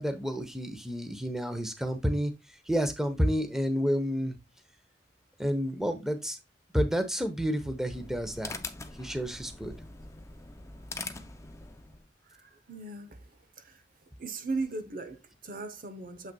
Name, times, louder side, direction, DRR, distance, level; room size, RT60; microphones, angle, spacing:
voice 1, 0.0-2.3 2.7-4.4 5.4-6.4 6.7-8.5 9.0-9.7, equal, 5° right, 0.9 m, -30 dB
sound 1, 7.6-12.1, left 3 dB, 15° left, 0.5 m, -43 dB
voice 2, 12.3-13.8 14.2-16.3, right 3 dB, 55° right, 0.9 m, -38 dB
7.5 x 5.7 x 2.3 m
head